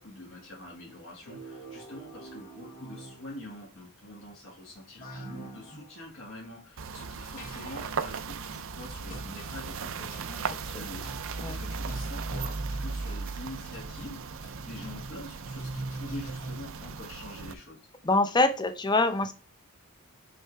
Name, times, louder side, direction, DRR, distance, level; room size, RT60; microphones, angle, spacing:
voice 1, 0.0-17.8, left 1 dB, 60° left, -3 dB, 1.9 m, -45 dB
sound 1, 1.3-3.6 5.0-5.9 7.4-8.0 9.1-9.5 10.1-10.5 11.0-11.3 11.9-16.9, right 2 dB, 40° left, 2.3 m, -43 dB
sound 2, 6.8-17.5, right 4 dB, 60° right, 0.6 m, -37 dB
voice 2, 18.0-19.3, left 2 dB, 20° left, 9 dB, 0.7 m, -24 dB
6.3 x 4.6 x 3.4 m, 0.32 s
head